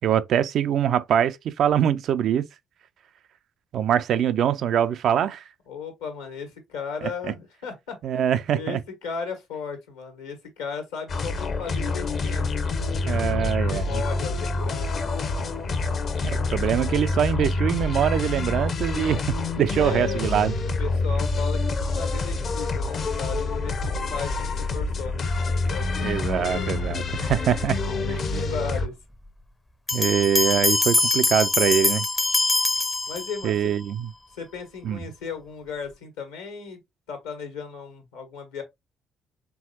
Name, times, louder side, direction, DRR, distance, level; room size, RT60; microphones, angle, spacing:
voice 1, 0.0-2.5 3.7-5.4 8.0-8.8 13.1-14.0 16.2-20.5 26.0-27.8 29.9-32.1 33.4-34.1 34.8-35.0, right 9 dB, 55° right, 0.3 m, -23 dB
voice 2, 5.7-8.2 8.5-12.6 12.9-15.1 19.8-20.5 20.8-26.7 27.9-28.9 33.1-33.7 34.4-36.8 37.1-38.6, left 5 dB, 75° left, 1.5 m, -36 dB
sound 1, 11.1-28.9, left 3 dB, 50° left, 0.8 m, -27 dB
sound 2, 29.9-33.7, left 2 dB, 15° left, 0.6 m, -23 dB
4.5 x 3.6 x 2.8 m
figure-of-eight pair, 45°, 0 cm